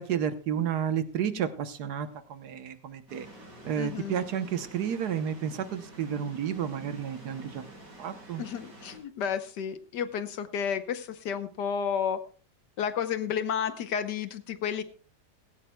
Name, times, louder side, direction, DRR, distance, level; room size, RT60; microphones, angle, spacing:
voice 1, 0.0-3.3 3.6-7.7 8.0-8.4, right 8 dB, 70° right, 11 dB, 1.4 m, -31 dB
sound 1, 3.1-9.0, right 1 dB, 85° right, 5.6 m, -49 dB
voice 2, 3.8-4.2 8.4-12.2 12.8-14.8, left 7 dB, 80° left, 11 dB, 1.6 m, -31 dB
17.0 x 16.0 x 2.2 m, 0.37 s
omnidirectional pair, 1.8 m